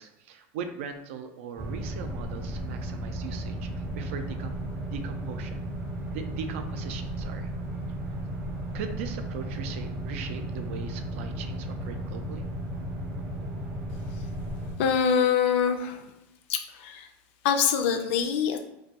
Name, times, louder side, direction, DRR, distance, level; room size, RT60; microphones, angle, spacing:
voice 1, 0.0-4.6 4.9-5.6 6.1-7.5 8.1-8.2 8.7-12.4, right 6 dB, 80° right, 7 dB, 0.3 m, -39 dB
sound 1, 1.6-14.8, right 1 dB, 35° right, 0.6 m, -34 dB
voice 2, 14.8-16.0 16.5-17.1 17.4-18.6, left 7 dB, 70° left, 6 dB, 0.4 m, -24 dB
2.2 x 2.2 x 2.8 m, 0.89 s
supercardioid pair, 150°, 7 cm